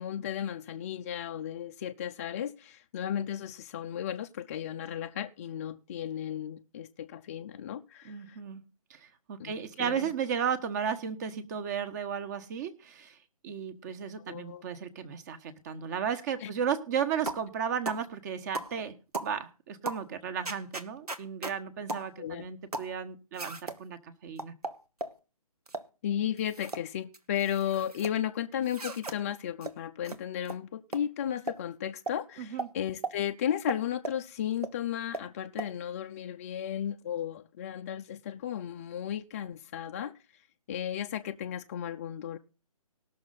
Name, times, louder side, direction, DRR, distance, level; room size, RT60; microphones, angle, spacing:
voice 1, 0.0-8.4 9.4-10.1 14.2-14.6 16.4-16.5 22.2-22.4 26.0-40.1 40.7-42.4, left 10 dB, 25° left, 5 dB, 0.5 m, -34 dB
voice 2, 8.0-8.6 8.9-13.2 13.4-24.5 32.4-32.7, right 7 dB, 30° right, 11 dB, 1.3 m, -34 dB
sound 1, 17.3-17.5 17.8-18.0 18.5-18.7 19.1-19.3 19.8-20.0 20.4-21.6 21.9-22.1 22.7-22.9 23.4-23.8 24.4-25.2 25.7-25.9 26.4-26.8 27.1-28.1 28.6-29.2 29.6-29.7 30.0-30.2 30.4-30.6 30.9-31.0 31.5-31.6 32.1-32.2 32.6-32.7 33.0-33.1 33.7-34.2 34.6-34.7 35.1-35.3 35.6-35.7, right 3 dB, 85° right, 1.3 m, -36 dB
19.5 x 6.5 x 4.0 m, 0.33 s
figure-of-eight pair, 140°, 19 cm